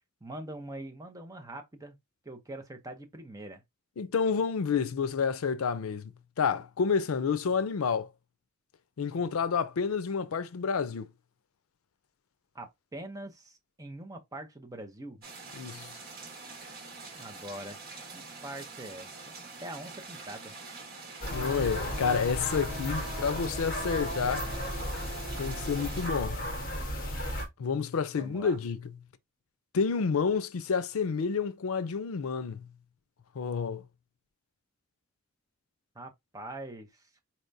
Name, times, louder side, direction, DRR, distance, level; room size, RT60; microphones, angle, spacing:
voice 1, 0.2-2.0 2.2-3.6 12.5-15.2 17.1-17.8 18.1-19.1 19.6-20.5 28.2-28.6 35.9-37.1, right 1 dB, 15° right, 0.7 m, -43 dB
voice 2, 4.0-8.1 9.0-11.1 15.5-15.9 21.3-24.5 25.4-26.5 27.6-29.0 29.7-32.7 33.4-33.9, left 5 dB, 90° left, 0.5 m, -29 dB
sound 1, 15.2-26.1, right 4 dB, 45° right, 1.7 m, -45 dB
sound 2, 21.2-27.5, equal, 45° left, 1.3 m, -34 dB
4.2 x 3.3 x 2.6 m
head